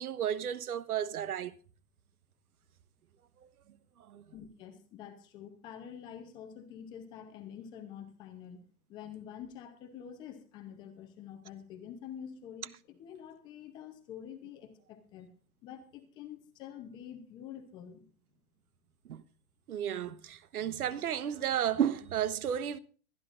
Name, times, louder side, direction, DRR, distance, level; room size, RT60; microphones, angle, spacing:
voice 1, 0.0-1.5 4.1-4.2 19.1-19.2 19.7-22.8, right 9 dB, 90° right, 1.2 m, -33 dB
voice 2, 4.3-8.6 8.9-15.3 15.6-18.0, left 9 dB, 10° left, 0.7 m, -47 dB
23.5 x 10.5 x 2.5 m
hypercardioid pair, 170°, 43 cm